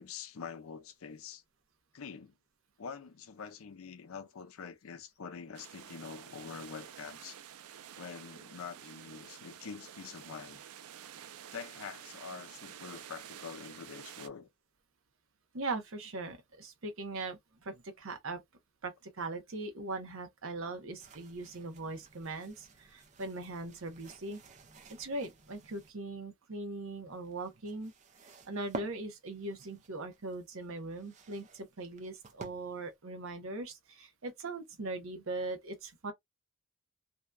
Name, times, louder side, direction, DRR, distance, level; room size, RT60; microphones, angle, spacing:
voice 1, 0.0-1.4 1.9-2.4 2.8-7.4 8.0-10.6 11.5-14.5, left 6 dB, 70° left, 0.5 m, -45 dB
sound 1, 5.5-14.3, right 10 dB, 90° right, 0.4 m, -50 dB
voice 2, 15.5-18.4 18.8-24.4 25.0-27.9 28.4-36.1, right 2 dB, 65° right, 0.8 m, -40 dB
sound 2, 21.0-25.9 26.9-32.9, right 3 dB, 35° right, 0.5 m, -51 dB
2.7 x 2.2 x 2.2 m
head